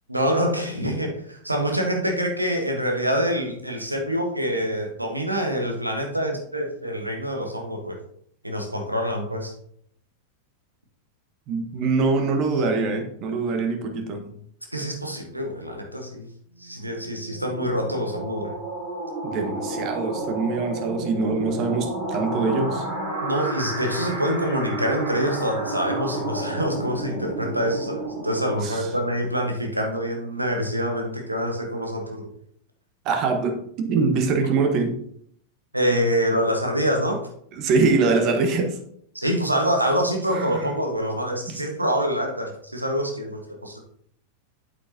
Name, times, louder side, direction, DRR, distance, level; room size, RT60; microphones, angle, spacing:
voice 1, 0.1-8.0 8.4-9.5 14.7-16.3 16.6-18.5 23.2-32.3 35.7-37.2 39.1-43.8, equal, 85° right, 2 dB, 1.4 m, -26 dB
voice 2, 11.5-14.3 19.2-22.8 28.6-28.9 33.0-35.0 37.5-38.8 40.3-40.7 41.5-41.6, right 4 dB, 40° right, 5 dB, 1.3 m, -24 dB
sound 1, 16.6-29.2, right 1 dB, 55° right, 3.3 m, -31 dB
8.4 x 8.0 x 2.8 m, 0.68 s
figure-of-eight pair, 90°, 0 cm